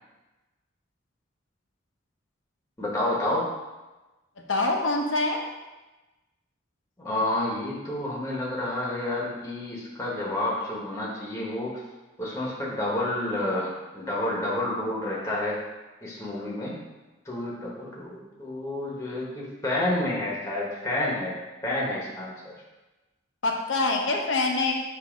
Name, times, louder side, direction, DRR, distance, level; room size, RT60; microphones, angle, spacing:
voice 1, 2.8-3.5 7.0-11.8 12.2-15.6 16.0-16.8 17.2-22.3, left 1 dB, 15° left, -5 dB, 1.1 m, -29 dB
voice 2, 4.5-5.4 23.4-24.7, left 2 dB, 75° left, 1 dB, 0.9 m, -25 dB
7.4 x 2.7 x 5.1 m, 1.1 s
head